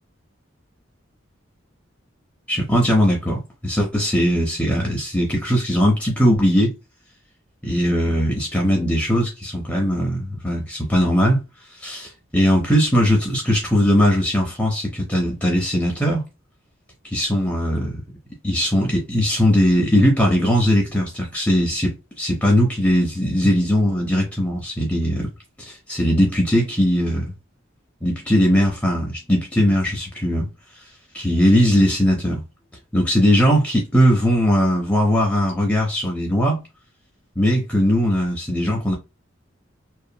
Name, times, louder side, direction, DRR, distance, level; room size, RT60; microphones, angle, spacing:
voice 1, 2.5-6.7 7.6-11.4 11.7-16.3 17.1-18.0 18.4-25.3 25.6-27.3 28.0-30.5 31.1-32.4 32.9-36.6 37.4-38.9, equal, 10° left, 0.6 m, -19 dB
2.8 x 2.4 x 2.2 m
head